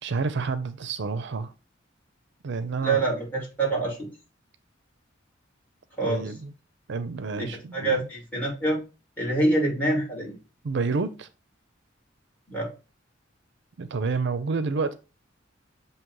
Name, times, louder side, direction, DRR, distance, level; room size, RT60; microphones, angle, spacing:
voice 1, 0.0-1.5 2.4-3.0 6.0-6.5 6.9-8.0 10.6-11.3 13.8-14.9, right 4 dB, 65° right, 0.5 m, -29 dB
voice 2, 2.8-4.1 6.0-6.3 7.3-8.8 9.2-10.4 12.5-12.7, right 2 dB, 10° left, 2.8 m, -26 dB
7.3 x 2.8 x 4.7 m
head